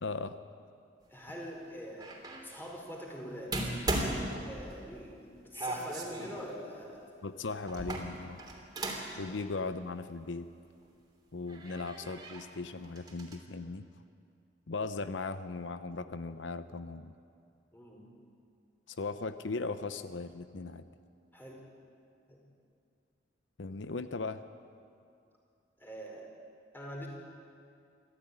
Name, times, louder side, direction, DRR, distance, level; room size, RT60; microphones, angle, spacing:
voice 1, 0.0-0.4 7.2-8.4 9.2-10.5 11.3-13.9 14.7-17.1 18.9-20.8 23.6-24.4, left 3 dB, 90° left, 11 dB, 0.8 m, -38 dB
voice 2, 1.1-2.1 2.4-3.7 4.3-7.0 17.7-18.1 21.3-21.6 22.3-22.4 25.8-26.3 26.7-27.1, equal, 10° left, -1 dB, 4.8 m, -44 dB
sound 1, 2.0-2.5 3.5-5.0 5.5-6.4 7.7-9.2 9.5-9.6 10.8-10.9 11.5-12.5 12.8-13.4, right 1 dB, 20° right, 3.3 m, -37 dB
24.5 x 14.5 x 9.8 m, 2.4 s
head